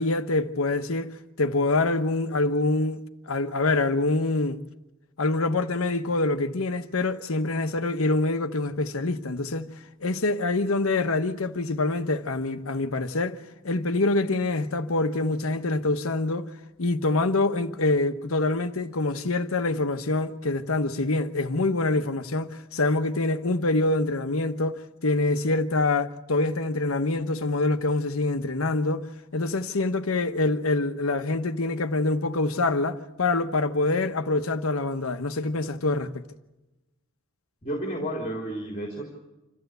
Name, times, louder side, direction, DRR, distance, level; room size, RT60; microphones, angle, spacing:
voice 1, 0.0-4.6 5.2-9.7 10.0-13.4 13.6-16.5 16.8-29.1 29.3-36.2, left 2 dB, 90° left, 1.1 m, -25 dB
voice 2, 37.6-39.0, right 1 dB, 35° left, 3.4 m, -31 dB
26.5 x 14.0 x 8.0 m
head